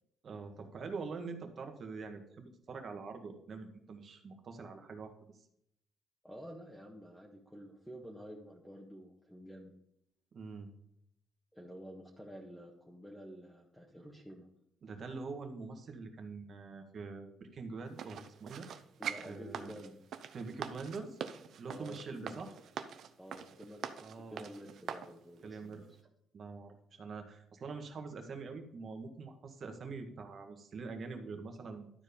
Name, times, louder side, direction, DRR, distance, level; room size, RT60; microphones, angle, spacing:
voice 1, 0.2-5.5 10.3-10.7 14.8-18.7 19.2-19.8 20.3-21.2 21.6-22.5 24.0-24.5 25.4-25.8 26.3-31.9, right 4 dB, 55° right, 5 dB, 1.7 m, -44 dB
voice 2, 6.2-9.7 11.5-14.5 19.0-19.9 21.7-22.5 23.2-25.8, equal, 5° left, -2 dB, 1.6 m, -50 dB
sound 1, 18.0-25.1 25.6-25.7, right 8 dB, 70° right, 0.7 m, -44 dB
12.0 x 4.7 x 5.3 m, 0.74 s
cardioid pair, 90°, 0 cm